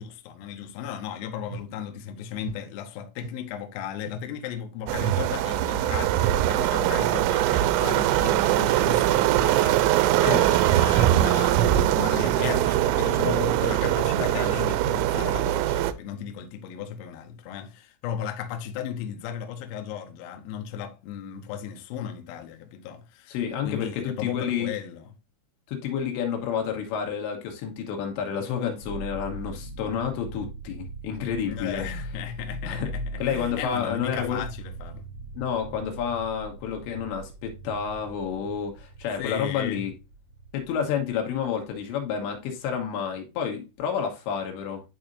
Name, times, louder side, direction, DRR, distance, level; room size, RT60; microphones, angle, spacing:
voice 1, 0.0-23.4 23.6-25.1 31.5-35.1 39.2-39.9, left 9 dB, 90° left, 2.1 m, -35 dB
sound 1, 1.5-1.7 2.4-2.7 3.2-3.4 4.0-4.3 4.9-5.1 5.8-6.1 6.7-7.0 7.5-7.8 8.4-8.7 9.5-9.8 10.3-10.6 11.2-11.6 12.2-12.5 13.2-13.5 14.1-14.5 15.1-15.4, right 5 dB, 45° right, 1.8 m, -41 dB
sound 2, 4.9-15.9, right 13 dB, 85° right, 2.5 m, -22 dB
voice 2, 23.3-24.7 25.7-31.9 32.6-32.9 33.2-34.4 35.3-39.9 40.5-44.8, left 7 dB, 75° left, 3.3 m, -29 dB
sound 3, 28.8-42.8, right 2 dB, 20° right, 0.9 m, -40 dB
11.0 x 4.3 x 2.6 m
omnidirectional pair, 5.6 m